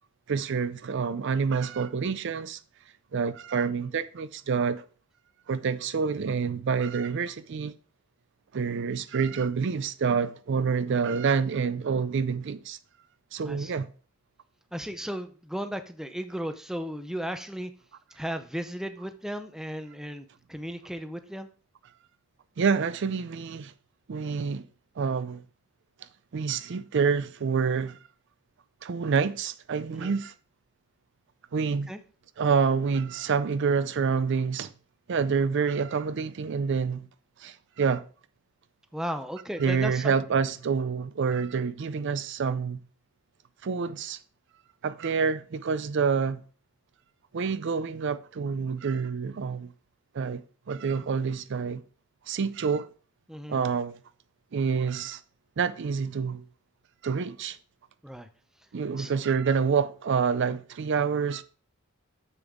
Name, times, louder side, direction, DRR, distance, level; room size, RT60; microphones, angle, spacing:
voice 1, 0.3-2.6 3.1-4.8 5.5-7.7 8.5-12.8 13.3-13.9 22.6-23.7 24.1-24.7 25.0-25.4 26.3-28.0 28.8-30.3 31.5-31.9 32.4-34.7 35.1-37.1 37.4-38.0 39.6-42.8 43.6-44.2 44.8-46.4 47.3-49.7 50.1-50.4 50.7-51.8 52.3-52.9 53.5-54.0 54.5-55.2 55.6-56.4 57.0-57.6 58.7-61.4, right 5 dB, 55° right, 0.4 m, -27 dB
voice 2, 13.4-13.8 14.7-17.7 18.1-21.5 29.9-30.1 31.9-32.0 38.9-40.1 53.3-53.6 58.0-58.3 59.0-59.1, equal, ahead, 0.6 m, -35 dB
7.0 x 6.8 x 3.6 m
head